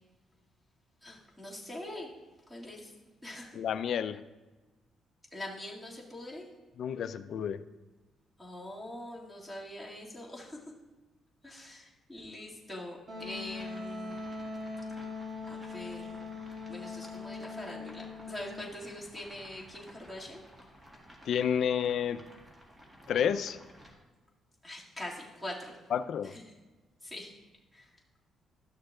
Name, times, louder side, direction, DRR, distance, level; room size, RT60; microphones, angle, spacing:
voice 1, 1.0-2.1 2.5-2.9 3.2-3.5 5.3-6.5 8.4-10.6 11.4-14.2 15.5-16.2 16.7-20.5 24.6-25.7 26.2-26.4 27.0-27.3 27.7-27.9, left 1 dB, 5° left, -5 dB, 2.1 m, -43 dB
voice 2, 3.5-4.2 6.8-7.6 21.3-22.2 23.1-23.6 25.9-26.4, left 8 dB, 65° left, 13 dB, 0.4 m, -30 dB
Wind instrument woodwind instrument, 13.1-18.6, left 3 dB, 55° right, 2.4 m, -41 dB
sound 1, 13.2-23.9, equal, 15° right, 1.7 m, -54 dB
12.5 x 6.5 x 2.4 m, 1.2 s
cardioid pair, 90°, 0 cm